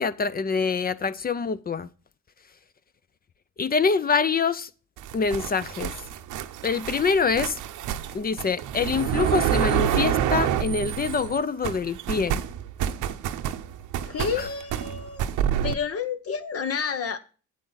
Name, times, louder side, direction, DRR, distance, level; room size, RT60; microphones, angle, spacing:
voice 1, 0.0-1.9 3.6-4.7 5.1-5.9 6.6-7.6 8.1-12.4 14.4-14.5, left 5 dB, 30° left, 0.6 m, -25 dB
sound 1, 5.0-11.4 11.6-15.8, right 10 dB, 85° right, 0.8 m, -28 dB
voice 2, 14.0-15.3 15.6-17.2, left 6 dB, 50° left, 1.1 m, -30 dB
9.1 x 8.3 x 4.0 m
cardioid pair, 90°, 30 cm